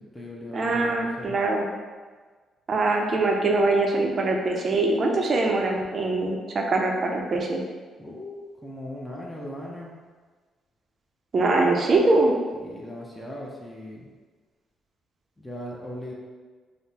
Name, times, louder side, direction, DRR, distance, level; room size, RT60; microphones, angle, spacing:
voice 1, 0.0-1.3 8.0-9.9 12.5-14.1 15.4-16.1, left 1 dB, 5° left, -3 dB, 0.5 m, -38 dB
voice 2, 0.5-1.7 2.7-7.6 11.3-12.3, right 2 dB, 45° right, 1 dB, 0.5 m, -23 dB
3.6 x 2.0 x 2.8 m, 1.4 s
cardioid pair, 90°, 0 cm